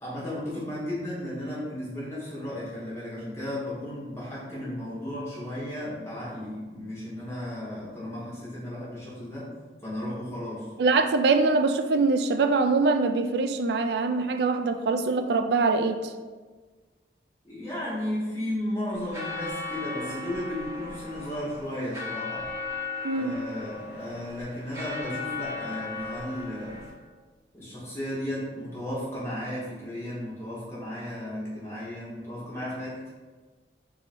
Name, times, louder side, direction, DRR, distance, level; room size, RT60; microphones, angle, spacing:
voice 1, 0.0-9.5 9.8-10.7 17.4-22.5 23.1-26.8 27.5-33.1, left 1 dB, 15° left, -9 dB, 1.4 m, -34 dB
voice 2, 10.8-16.1 23.0-23.4, right 3 dB, 70° right, 8 dB, 0.3 m, -23 dB
sound 1, 18.9-26.9, left 3 dB, 15° right, 1.1 m, -37 dB
3.7 x 3.0 x 4.2 m, 1.4 s
head